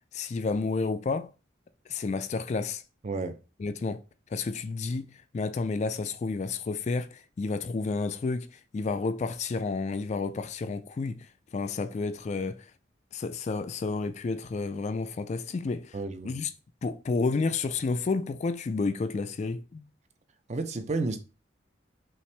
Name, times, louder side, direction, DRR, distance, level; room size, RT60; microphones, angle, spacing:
voice 1, 0.1-1.3 1.9-2.8 3.6-4.0 4.3-11.3 11.5-12.7 13.1-16.0 16.2-16.5 16.8-19.8, left 4 dB, 35° left, 0.3 m, -31 dB
voice 2, 3.0-3.4 15.9-16.4 20.5-21.2, right 3 dB, 35° right, 0.5 m, -31 dB
5.6 x 2.6 x 3.3 m
head